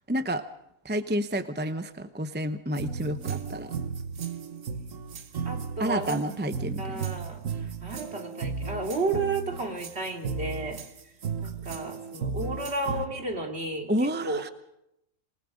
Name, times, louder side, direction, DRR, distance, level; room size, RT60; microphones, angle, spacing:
voice 1, 0.1-0.4 0.8-3.8 5.8-7.1 13.9-14.5, equal, 10° right, 10 dB, 0.7 m, -30 dB
sound 1, 2.7-13.1, right 5 dB, 70° right, 1.5 m, -35 dB
voice 2, 5.4-6.2 6.8-10.8 11.4-14.4, right 3 dB, 50° right, 2 dB, 3.2 m, -32 dB
27.5 x 20.5 x 5.2 m, 0.81 s
omnidirectional pair, 1.4 m